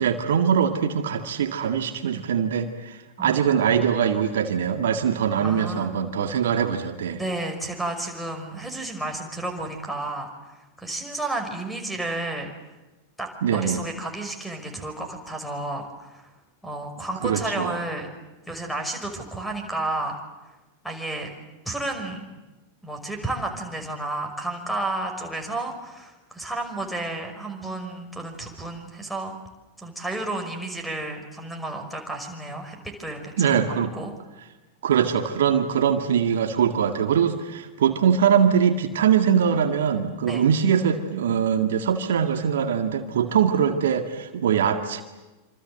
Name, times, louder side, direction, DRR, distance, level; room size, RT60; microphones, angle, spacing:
voice 1, 0.0-7.2 13.4-13.8 17.2-17.8 33.4-33.9 34.8-45.0, right 8 dB, 60° right, 7 dB, 2.0 m, -22 dB
voice 2, 3.2-3.5 5.4-6.0 7.1-12.5 13.2-16.3 16.6-18.1 18.5-20.2 20.8-21.3 21.7-22.2 22.8-29.3 29.8-33.5 33.9-34.1 40.3-40.5, right 2 dB, ahead, 6 dB, 5.8 m, -32 dB
27.0 x 27.0 x 8.0 m, 1.1 s
figure-of-eight pair, 90°, 0 cm